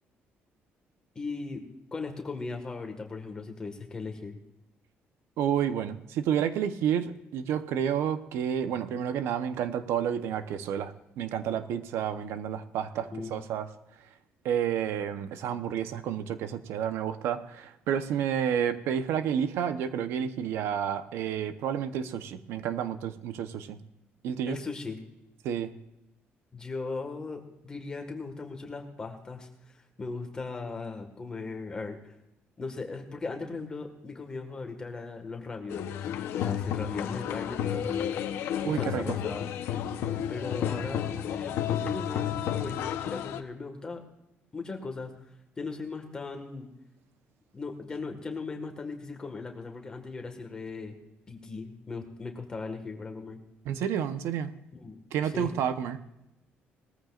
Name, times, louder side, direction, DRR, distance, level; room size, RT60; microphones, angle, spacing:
voice 1, 1.1-1.6 1.9-4.4 13.1-13.3 24.5-25.0 26.5-29.5 30.0-32.1 32.6-38.2 38.6-39.5 40.3-44.0 44.5-45.1 45.6-46.7 47.5-50.9 51.3-53.4 54.7-55.5, left 4 dB, 20° left, 3 dB, 1.7 m, -38 dB
voice 2, 5.4-13.7 14.4-23.8 24.2-24.6 25.4-25.7 38.6-39.2 53.6-54.5 55.1-56.0, right 9 dB, 90° right, 10 dB, 0.9 m, -30 dB
sound 1, 35.7-43.4, left 10 dB, 85° left, 0.9 m, -31 dB
20.0 x 14.5 x 2.5 m, 0.88 s
cardioid pair, 180°, 4 cm